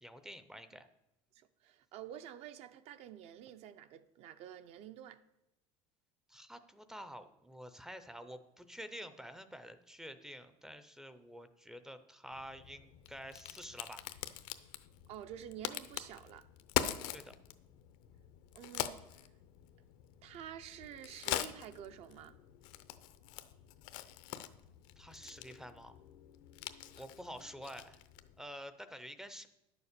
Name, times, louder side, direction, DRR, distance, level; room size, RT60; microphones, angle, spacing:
voice 1, 0.0-0.9 6.3-14.0 17.1-17.4 25.0-26.0 27.0-28.0 28.4-29.5, equal, 5° right, 0.5 m, -49 dB
voice 2, 1.3-5.2 15.1-16.5 18.5-19.2 20.2-22.4 26.9-27.0, right 10 dB, 45° right, 0.6 m, -49 dB
Crack, 12.3-28.4, left 13 dB, 65° left, 0.7 m, -43 dB
10.5 x 7.1 x 6.6 m
cardioid pair, 160°, 14 cm